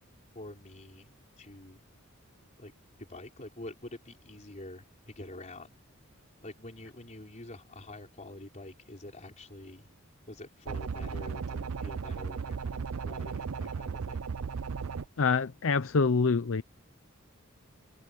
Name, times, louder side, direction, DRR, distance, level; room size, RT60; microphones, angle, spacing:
voice 1, 0.3-1.8 2.6-2.7 3.0-5.7 6.4-9.9 10.3-14.3, left 1 dB, 35° left, 4.2 m, -46 dB
sound 1, 10.7-15.1, right 5 dB, 85° right, 0.5 m, -36 dB
voice 2, 15.2-16.6, left 4 dB, 65° left, 0.7 m, -26 dB
head